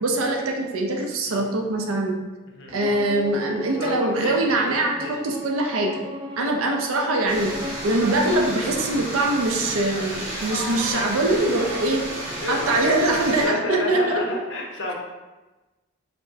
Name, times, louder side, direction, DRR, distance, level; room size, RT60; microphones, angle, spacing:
voice 1, 0.0-2.2 2.7-6.1 6.4-7.5 7.8-12.0 12.5-14.2, right 2 dB, 85° right, 2 dB, 0.5 m, -23 dB
voice 2, 2.4-3.0 3.8-5.1 12.4-14.9, left 2 dB, 60° left, -1 dB, 0.6 m, -31 dB
Bowed string instrument, 2.8-7.9, left 1 dB, 25° right, 0.3 m, -36 dB
sound 1, 7.3-13.5, right 1 dB, 45° right, 1.5 m, -32 dB
4.2 x 2.0 x 2.7 m, 1.1 s
head